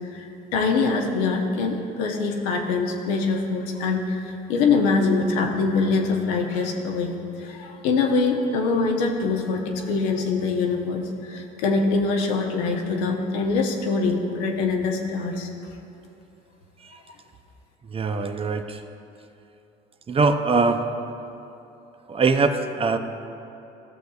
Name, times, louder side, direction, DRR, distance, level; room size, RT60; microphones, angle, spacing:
voice 1, 0.5-15.5, left 4 dB, 90° left, 2 dB, 0.9 m, -24 dB
voice 2, 17.9-18.8 20.1-20.8 22.1-23.0, right 4 dB, 30° right, 8 dB, 0.5 m, -22 dB
14.0 x 6.5 x 2.3 m, 2.9 s
supercardioid pair, 85°, 20 cm